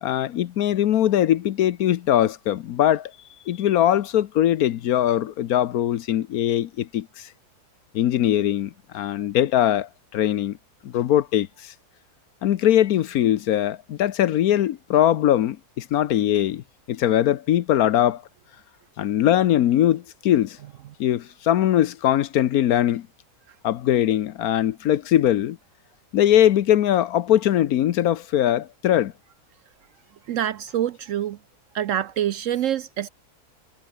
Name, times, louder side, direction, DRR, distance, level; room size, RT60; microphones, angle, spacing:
voice 1, 0.0-3.1 3.5-7.3 7.9-10.6 10.8-11.7 12.4-18.2 19.0-20.6 21.0-23.1 23.6-25.6 26.1-29.1, left 11 dB, 70° left, 1.2 m, -21 dB
voice 2, 30.3-31.4 31.7-33.1, right 11 dB, 65° right, 0.8 m, -26 dB
omnidirectional pair, 1.7 m